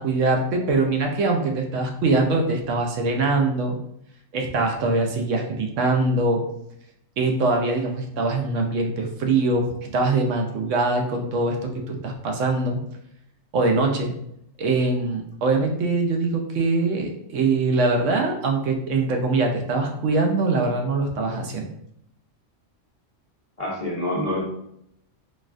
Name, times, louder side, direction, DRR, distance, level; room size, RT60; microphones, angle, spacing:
voice 1, 0.0-3.8 4.3-6.4 7.2-12.8 13.5-14.1 14.6-21.7, right 3 dB, 75° right, 2 dB, 0.9 m, -23 dB
voice 2, 23.6-24.4, left 1 dB, 40° left, -5 dB, 0.6 m, -26 dB
4.0 x 2.3 x 2.5 m, 0.75 s
omnidirectional pair, 1.3 m